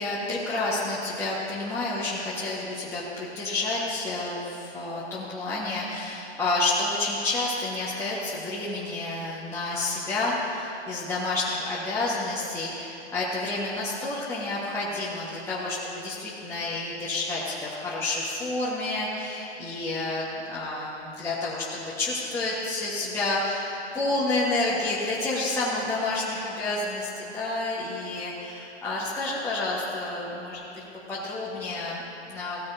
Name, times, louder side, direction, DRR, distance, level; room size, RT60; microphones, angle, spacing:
voice 1, 0.0-30.6 31.1-32.6, left 2 dB, 10° left, -8 dB, 1.4 m, -29 dB
17.5 x 10.0 x 2.7 m, 3.0 s
figure-of-eight pair, 120°, 33 cm